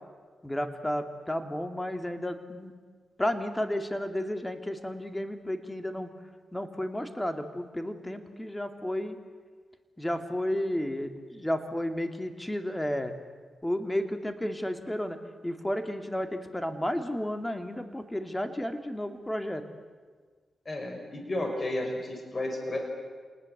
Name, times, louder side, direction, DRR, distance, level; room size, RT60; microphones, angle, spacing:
voice 1, 0.4-2.7 3.2-6.1 6.5-9.2 10.0-13.1 13.6-15.2 15.4-19.6, left 1 dB, 10° left, 7 dB, 2.6 m, -32 dB
voice 2, 20.7-22.8, left 1 dB, 35° left, 3 dB, 5.7 m, -32 dB
27.5 x 20.0 x 8.1 m, 1.5 s
cardioid pair, 65°, 0 cm